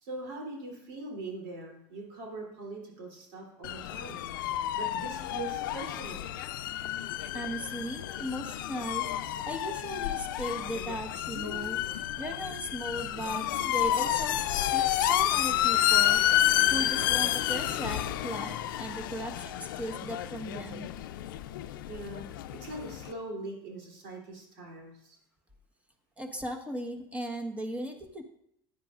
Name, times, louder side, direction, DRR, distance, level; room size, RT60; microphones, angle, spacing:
voice 1, 0.0-4.2 4.7-6.3 21.9-22.3 22.6-25.2, right 2 dB, 75° right, -1 dB, 3.3 m, -41 dB
sound 1, 3.6-23.1, left 12 dB, 85° left, 0.5 m, -30 dB
voice 2, 7.3-9.2 9.5-11.8 12.2-16.2 16.7-20.9 26.2-28.2, right 1 dB, 15° right, 5 dB, 1.4 m, -37 dB
14.5 x 9.4 x 2.5 m, 0.74 s
supercardioid pair, 90°, 11 cm